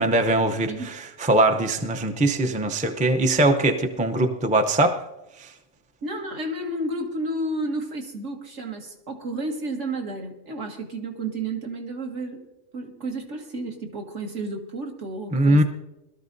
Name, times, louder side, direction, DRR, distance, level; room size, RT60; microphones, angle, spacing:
voice 1, 0.0-5.0 5.4-5.5 15.3-15.6, right 2 dB, 10° right, 5 dB, 0.4 m, -21 dB
voice 2, 0.7-1.0 6.0-12.5 12.7-15.6, right 2 dB, 65° right, 2 dB, 1.8 m, -31 dB
21.5 x 13.0 x 2.6 m, 0.98 s
omnidirectional pair, 1.4 m